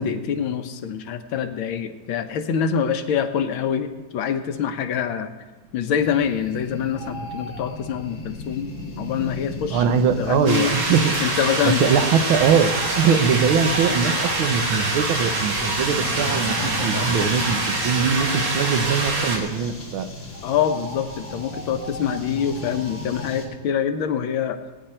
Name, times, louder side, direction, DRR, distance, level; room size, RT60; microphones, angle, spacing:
voice 1, 0.0-5.3 5.7-8.7 9.0-10.8 11.2-12.0 20.4-24.6, left 8 dB, 85° left, 8 dB, 1.7 m, -25 dB
sound 1, 5.9-23.4, left 2 dB, 35° left, 2.6 m, -35 dB
voice 2, 9.7-11.2 11.6-20.1, right 6 dB, 85° right, 9 dB, 1.7 m, -22 dB
sound 2, 10.5-19.4, right 2 dB, 60° right, 2.6 m, -25 dB
18.5 x 9.3 x 4.4 m, 1.2 s
omnidirectional pair, 2.2 m